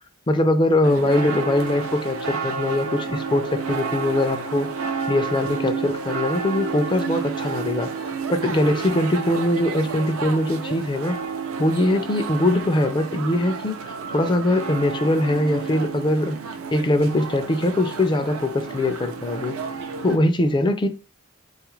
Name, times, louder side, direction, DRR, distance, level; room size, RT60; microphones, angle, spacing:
voice 1, 0.3-4.7 5.1-11.2 11.6-16.4 16.7-19.5 20.0-20.9, left 1 dB, 20° left, 0.3 m, -22 dB
sound 1, 0.8-20.2, right 5 dB, 80° right, 0.5 m, -30 dB
3.5 x 2.4 x 3.0 m
head